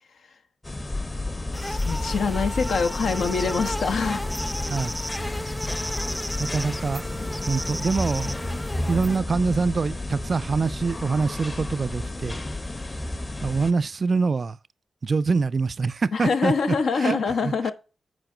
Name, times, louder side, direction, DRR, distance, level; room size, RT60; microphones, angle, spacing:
sound 1, 0.6-13.7, left 2 dB, 30° left, 0.9 m, -31 dB
sound 2, 1.5-9.2, equal, 5° left, 0.5 m, -34 dB
voice 1, 1.6-4.3 16.1-17.7, left 5 dB, 80° left, 1.0 m, -25 dB
voice 2, 6.4-7.0 7.5-8.3 8.8-12.4 13.4-14.6 15.0-17.7, right 4 dB, 50° right, 0.4 m, -25 dB
8.1 x 4.7 x 4.9 m
cardioid pair, 80°, 0 cm